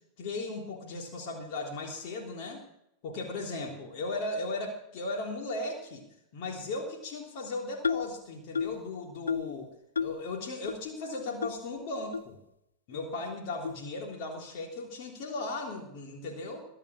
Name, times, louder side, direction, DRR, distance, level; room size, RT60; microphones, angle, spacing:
voice 1, 0.2-2.6 3.0-6.0 6.3-9.7 10.0-12.4 12.9-16.6, left 2 dB, 45° left, 1 dB, 3.4 m, -37 dB
sound 1, 7.8-8.2 8.6-8.8 9.3-9.6 10.0-10.2 10.7-10.8 11.4-11.5 12.1-12.2 12.9-13.0 13.6-13.8, left 6 dB, 75° left, 0.5 m, -31 dB
23.0 x 10.0 x 6.2 m, 0.81 s
figure-of-eight pair, 90°, 0 cm